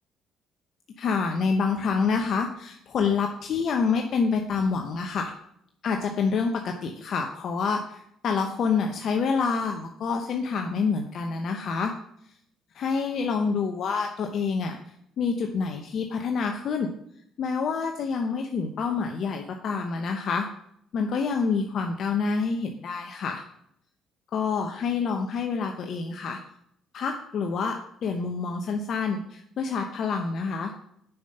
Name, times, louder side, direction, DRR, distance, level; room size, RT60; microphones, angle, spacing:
voice 1, 1.0-5.3 5.8-11.9 12.7-14.8 15.2-16.9 17.4-20.5 20.9-23.4 24.3-26.4 26.9-30.7, left 5 dB, 60° left, 4 dB, 0.9 m, -27 dB
6.9 x 5.8 x 6.7 m, 0.72 s
supercardioid pair, 75°, 0 cm